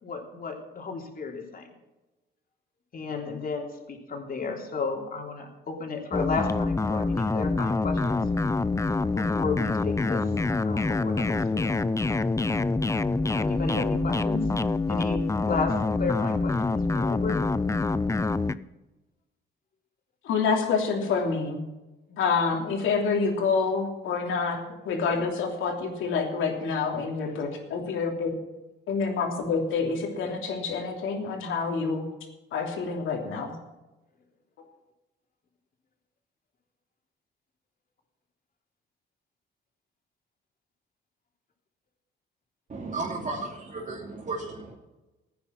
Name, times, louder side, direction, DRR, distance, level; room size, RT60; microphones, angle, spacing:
voice 1, 0.0-1.7 2.9-8.2 9.1-10.3 10.6-11.8 13.3-14.5 14.9-17.4 22.1-22.2, left 4 dB, 45° left, 1 dB, 3.4 m, -33 dB
sound 1, 6.1-18.5, left 3 dB, 15° left, 0.5 m, -26 dB
voice 2, 20.2-21.6 22.2-24.6 24.8-28.3 28.9-32.1 32.5-33.6, left 5 dB, 80° left, 2 dB, 3.1 m, -27 dB
voice 3, 42.7-44.8, right 3 dB, 40° right, -3 dB, 2.7 m, -34 dB
15.5 x 9.6 x 5.9 m, 1.1 s
cardioid pair, 90°, 20 cm